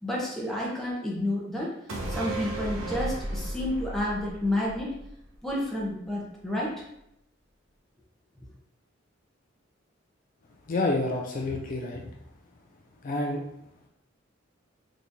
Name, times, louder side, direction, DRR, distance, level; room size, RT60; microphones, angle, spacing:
voice 1, 0.0-1.7 2.1-4.9 5.4-6.7, left 1 dB, ahead, -5 dB, 0.7 m, -30 dB
sound 1, 1.9-5.5 5.8-5.9, right 2 dB, 90° right, 0.6 m, -34 dB
voice 2, 10.7-12.0 13.0-13.4, left 2 dB, 45° left, 0 dB, 0.4 m, -28 dB
3.6 x 2.9 x 2.6 m, 0.78 s
head